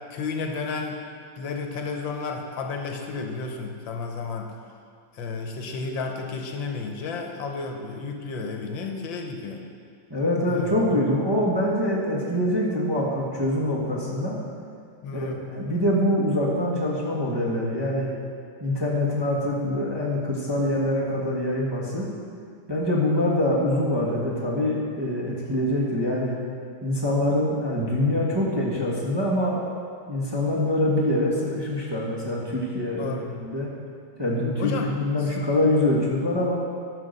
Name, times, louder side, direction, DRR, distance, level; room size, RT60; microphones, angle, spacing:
voice 1, 0.1-1.0 1.4-4.5 5.1-9.6 10.5-11.1 15.0-15.4 33.0-33.3 34.6-34.9 35.2-35.4, left 4 dB, 75° left, 3 dB, 1.6 m, -32 dB
voice 2, 10.1-14.4 15.1-18.1 18.6-22.1 22.7-26.4 26.8-29.6 30.1-33.7 34.2-36.5, left 1 dB, 15° right, -5 dB, 1.2 m, -24 dB
11.0 x 5.7 x 6.6 m, 2.2 s
omnidirectional pair, 2.1 m